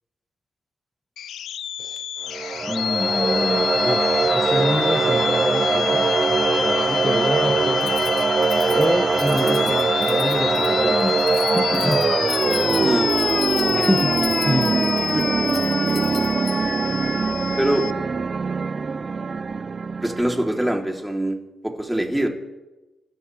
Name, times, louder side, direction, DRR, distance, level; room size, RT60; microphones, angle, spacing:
sound 1, 1.2-17.9, left 10 dB, 85° left, 0.5 m, -27 dB
sound 2, 2.3-20.9, right 4 dB, 45° right, 0.4 m, -22 dB
voice 1, 2.6-6.0 6.6-7.9 8.7-11.2 11.5-12.0 12.4-12.9 13.7-14.9, left 1 dB, 15° left, 4 dB, 1.4 m, -27 dB
Keys jangling, 7.8-16.8, left 5 dB, 55° left, 2.1 m, -40 dB
voice 2, 9.3-9.7 12.7-13.1 15.0-15.3 17.6-17.9 20.0-22.3, right 1 dB, 10° right, 1 dB, 3.4 m, -24 dB
29.5 x 14.0 x 3.5 m, 1.1 s
supercardioid pair, 55°, 0 cm